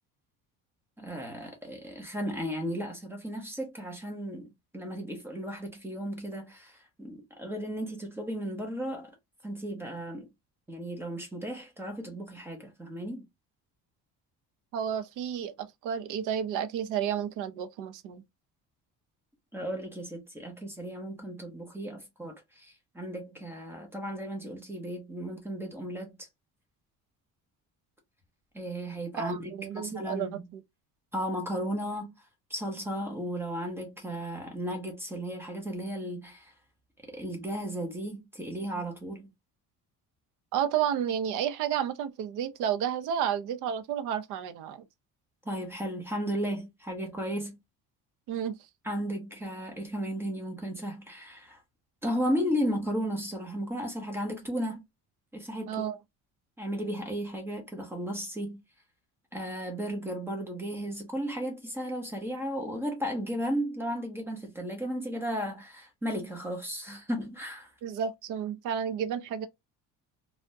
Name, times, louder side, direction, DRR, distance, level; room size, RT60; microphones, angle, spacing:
voice 1, 1.0-9.1 9.4-10.3 10.7-13.2 19.5-26.3 28.5-30.5 31.1-32.1 32.5-36.5 37.1-39.3 45.4-47.6 48.8-51.6 52.0-54.8 55.3-55.8 56.6-58.6 59.3-67.7, equal, 5° right, 0.7 m, -35 dB
voice 2, 14.7-18.2 29.1-30.3 40.5-44.8 48.3-48.5 55.7-56.0 67.8-69.5, right 9 dB, 65° right, 0.6 m, -31 dB
3.4 x 2.1 x 2.6 m
cardioid pair, 175°, 34 cm